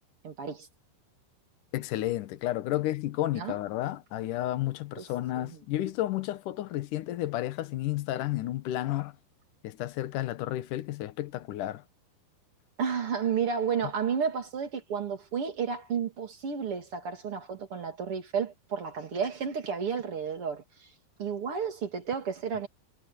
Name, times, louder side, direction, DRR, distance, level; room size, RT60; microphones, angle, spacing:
voice 1, 0.2-0.7 3.3-3.6 5.0-5.1 5.4-5.5 12.8-20.6 21.2-22.7, right 6 dB, 35° right, 2.7 m, -32 dB
voice 2, 1.7-9.1 9.6-11.8, left 14 dB, 80° left, 1.8 m, -32 dB
omnidirectional pair, 5.3 m